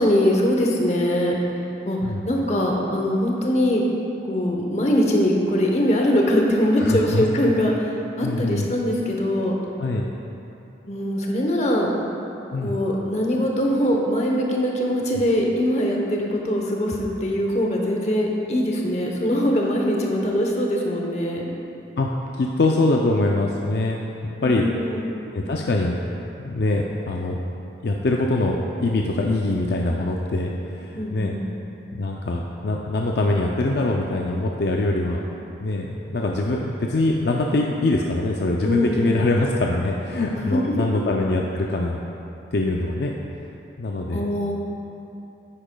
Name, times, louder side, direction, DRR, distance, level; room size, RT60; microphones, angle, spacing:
voice 1, 0.0-1.3 1.8-3.8 4.2-9.6 10.9-11.9 12.6-21.5 24.4-25.1 30.9-31.4 38.6-39.1 40.3-40.9 44.1-44.5, equal, 35° left, -1 dB, 0.9 m, -22 dB
voice 2, 6.8-7.6 8.2-8.7 9.8-10.0 12.5-12.7 22.0-22.1 22.4-24.0 24.4-24.7 25.3-26.0 26.4-27.4 27.8-31.3 31.9-35.2 35.6-42.0 42.5-43.1 43.8-44.2, left 2 dB, 65° left, 0 dB, 0.4 m, -23 dB
9.8 x 8.8 x 2.3 m, 2.8 s
head